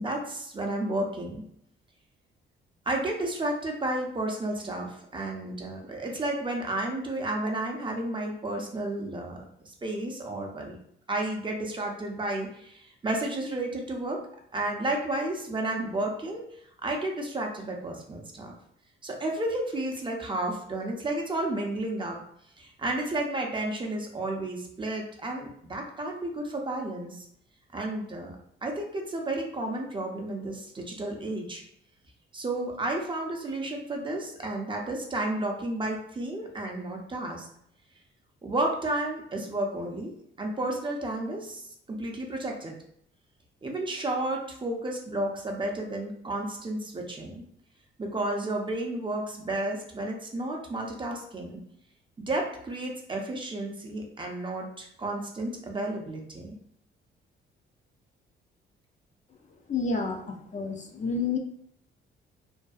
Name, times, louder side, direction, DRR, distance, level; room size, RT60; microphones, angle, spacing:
voice 1, 0.0-1.4 2.9-9.4 9.6-10.8 11.1-14.2 14.5-16.4 16.8-18.5 19.0-22.2 22.6-27.3 27.7-28.4 28.6-31.6 32.3-37.5 38.4-41.6 41.9-42.7 43.6-47.4 48.0-51.6 52.2-56.5, right 1 dB, 25° right, 1 dB, 0.5 m, -32 dB
voice 2, 59.7-61.4, left 4 dB, 40° left, 2 dB, 0.4 m, -30 dB
2.6 x 2.2 x 2.3 m, 0.70 s
cardioid pair, 90°, 20 cm